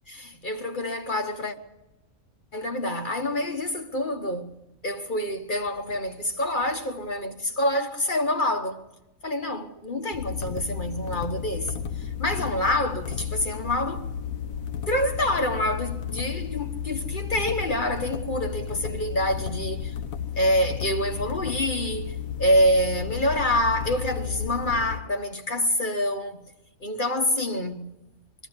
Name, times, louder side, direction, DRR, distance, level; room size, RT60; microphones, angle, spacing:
voice 1, 0.1-1.5 2.5-4.5 4.8-8.8 9.2-14.0 14.9-19.9 20.3-26.4 26.8-27.9, left 1 dB, 40° left, 1.2 m, -26 dB
sound 1, 10.1-25.0, left 8 dB, 70° left, 1.4 m, -33 dB
22.0 x 13.0 x 9.6 m
omnidirectional pair, 1.5 m